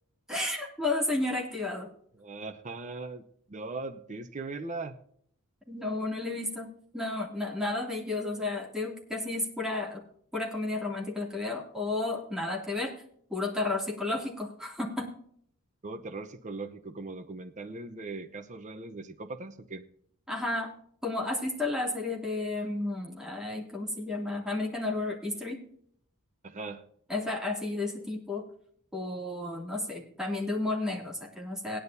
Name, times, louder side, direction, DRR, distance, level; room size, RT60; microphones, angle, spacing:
voice 1, 0.3-1.9 5.7-10.0 10.3-12.9 13.3-15.1 20.3-20.7 21.0-25.6 27.1-28.4 28.9-31.8, left 2 dB, 5° right, -1 dB, 2.6 m, -32 dB
voice 2, 2.2-3.2 3.5-5.0 15.8-19.8 26.4-26.8, right 3 dB, 35° right, 6 dB, 0.7 m, -39 dB
18.0 x 10.0 x 2.7 m, 0.66 s
head